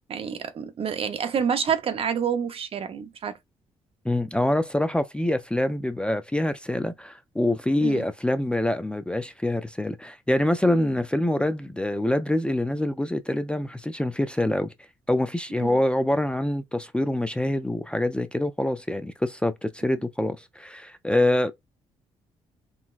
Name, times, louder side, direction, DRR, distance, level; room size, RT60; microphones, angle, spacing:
voice 1, 0.1-3.4 7.8-8.1 15.6-15.8, right 7 dB, 50° right, 0.7 m, -28 dB
voice 2, 4.0-14.7 15.1-21.5, left 1 dB, 10° left, 0.4 m, -25 dB
3.9 x 2.1 x 2.4 m
supercardioid pair, 60°, 12 cm